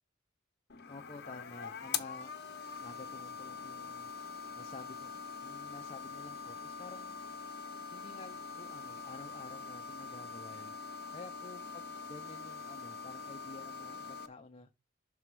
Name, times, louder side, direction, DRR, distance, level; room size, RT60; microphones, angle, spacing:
sound 1, 0.7-14.3, left 5 dB, 55° left, 1.0 m, -43 dB
voice 1, 0.9-2.3 2.8-4.1 4.5-5.1 5.4-7.1 7.9-10.7 11.1-14.7, left 3 dB, 30° left, 0.7 m, -51 dB
6.0 x 4.8 x 6.1 m
head